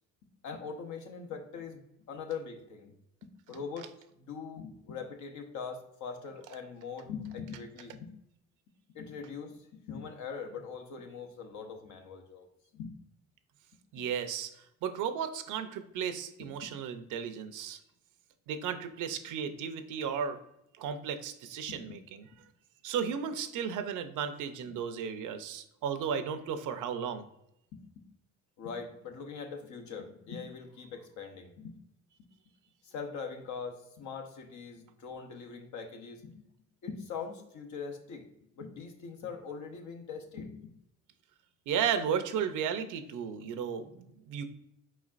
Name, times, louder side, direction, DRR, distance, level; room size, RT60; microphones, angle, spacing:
voice 1, 0.4-1.8 2.1-2.9 3.5-8.1 8.9-9.6 9.9-12.5 12.7-12.9 16.4-16.5 27.7-27.8 28.6-31.7 32.8-36.4 36.8-38.3 38.6-40.7, left 5 dB, 75° left, 3 dB, 0.9 m, -42 dB
voice 2, 13.9-17.8 18.5-20.4 20.8-22.2 22.8-27.2 41.7-44.4, right 7 dB, 85° right, 9 dB, 0.6 m, -34 dB
4.5 x 4.2 x 2.4 m, 0.80 s
cardioid pair, 90°, 30 cm